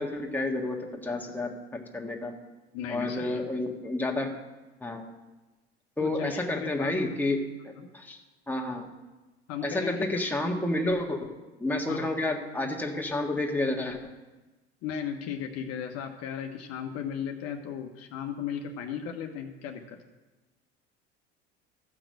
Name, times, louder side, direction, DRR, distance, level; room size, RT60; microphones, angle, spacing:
voice 1, 0.0-2.3 2.9-4.3 4.8-5.1 6.0-8.2 8.5-8.9 9.6-14.1, left 2 dB, 5° left, 1 dB, 1.7 m, -30 dB
voice 2, 2.7-3.4 6.0-6.9 7.8-7.9 9.5-10.2 11.9-12.2 14.8-20.0, left 8 dB, 50° left, 4 dB, 1.2 m, -36 dB
14.0 x 6.0 x 6.5 m, 1.1 s
figure-of-eight pair, 70°, 32 cm